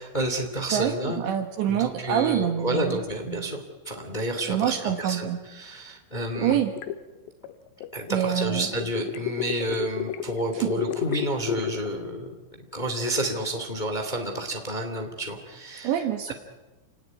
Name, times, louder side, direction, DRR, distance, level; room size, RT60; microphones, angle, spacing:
voice 1, 0.0-1.2 1.7-6.6 7.9-12.3 12.7-15.9 16.3-16.4, right 1 dB, 15° left, 5 dB, 1.5 m, -30 dB
voice 2, 0.7-3.5 4.5-5.4 6.4-6.7 8.1-8.7 10.6-10.7 15.8-16.3, right 10 dB, 70° right, 7 dB, 3.4 m, -26 dB
sound 1, 6.3-8.2 8.8-11.9, left 11 dB, 70° left, 3.1 m, -32 dB
29.5 x 19.0 x 9.7 m, 1.2 s
omnidirectional pair, 5.7 m